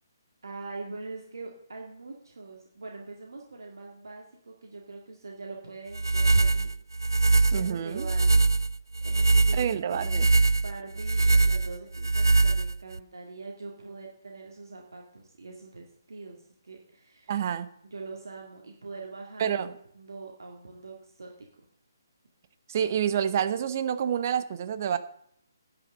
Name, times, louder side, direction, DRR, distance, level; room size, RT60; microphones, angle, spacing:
voice 1, 0.4-7.2 7.5-8.5 9.0-10.0 10.5-17.3 17.9-19.7 19.9-21.5, right 3 dB, 70° right, 1 dB, 2.1 m, -43 dB
sound 1, 5.9-13.0, right 3 dB, 90° right, 0.4 m, -23 dB
voice 2, 7.5-8.1 9.5-10.3 17.3-17.7 19.4-19.7 22.7-25.0, right 8 dB, 45° right, 13 dB, 1.0 m, -28 dB
11.5 x 6.1 x 7.5 m, 0.67 s
figure-of-eight pair, 140°, 2 cm